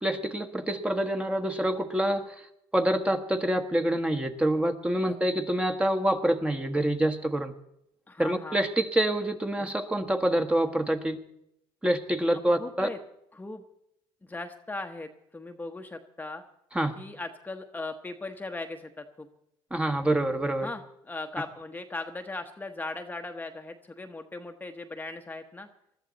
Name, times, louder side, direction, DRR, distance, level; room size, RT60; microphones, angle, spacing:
voice 1, 0.0-2.3 2.7-7.5 8.2-11.2 11.8-12.9 16.7-17.0 19.7-20.7, right 1 dB, 10° right, 7 dB, 1.4 m, -26 dB
voice 2, 8.1-8.6 12.5-13.0 13.3-13.6 14.3-16.4 17.0-19.3 20.6-25.7, left 2 dB, 15° left, 5 dB, 1.1 m, -38 dB
20.5 x 13.5 x 4.1 m, 0.78 s
supercardioid pair, 90°, 11 cm